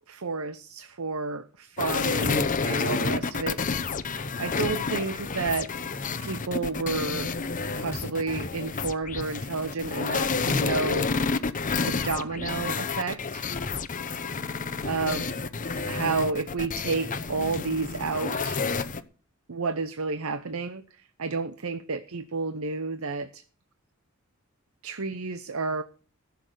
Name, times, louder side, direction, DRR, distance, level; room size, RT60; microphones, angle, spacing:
voice 1, 0.1-4.1 4.4-5.7 6.2-7.4 7.7-11.1 11.8-13.5 14.8-15.4 15.8-18.7 19.5-20.8 21.2-23.4 24.8-25.8, right 4 dB, 75° right, 0.9 m, -31 dB
sound 1, 1.8-19.0, left 4 dB, 40° left, 0.8 m, -29 dB
15.0 x 7.0 x 8.0 m
head